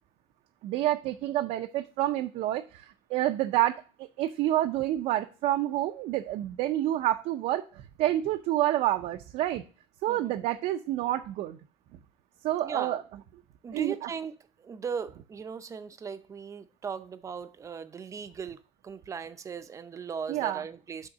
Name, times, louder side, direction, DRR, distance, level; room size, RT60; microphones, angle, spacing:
voice 1, 0.6-2.8 3.1-9.6 10.0-11.6 12.4-13.0 13.7-14.1 20.3-20.6, right 14 dB, 75° right, 0.5 m, -28 dB
voice 2, 10.1-10.4 12.6-13.0 13.6-21.1, right 6 dB, 25° right, 0.5 m, -38 dB
6.3 x 3.8 x 6.0 m
cardioid pair, 145°, 12 cm